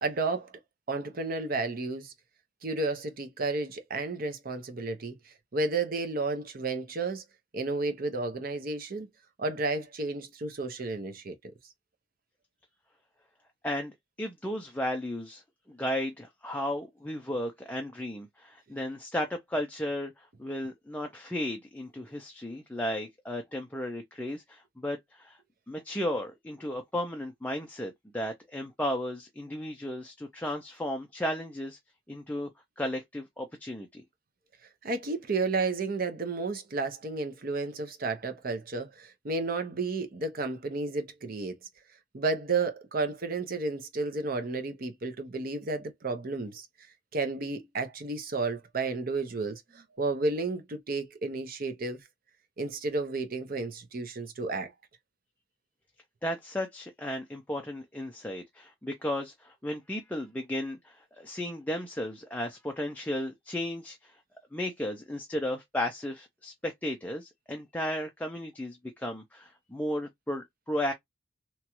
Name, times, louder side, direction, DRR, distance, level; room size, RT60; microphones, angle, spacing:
voice 1, 0.0-0.6 0.9-2.1 2.6-7.2 7.5-9.1 9.4-11.5 34.8-41.5 42.1-46.7 47.1-52.0 52.6-54.7, right 3 dB, 50° right, 0.6 m, -32 dB
voice 2, 13.6-15.4 15.7-25.4 25.7-31.8 32.1-32.5 32.8-34.0 56.2-64.2 64.5-70.9, left 1 dB, 10° left, 0.4 m, -34 dB
3.0 x 2.3 x 2.9 m
head